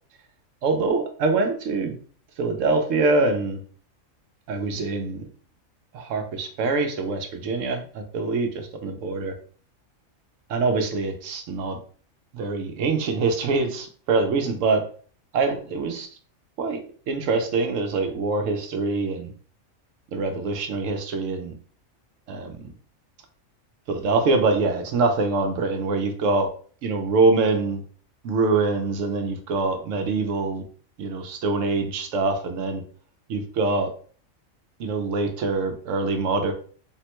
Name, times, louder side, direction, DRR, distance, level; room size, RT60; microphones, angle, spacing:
voice 1, 0.6-1.9 2.4-3.6 4.5-5.2 5.9-9.3 10.5-11.8 12.3-14.8 15.3-16.1 16.6-16.8 17.1-19.3 20.1-21.5 22.3-22.7 23.9-26.5 26.8-27.8 28.2-30.7 31.0-32.8 33.3-33.9 34.8-36.5, right 3 dB, 75° right, 5 dB, 0.9 m, -24 dB
3.5 x 2.1 x 2.9 m, 0.43 s
omnidirectional pair, 1.4 m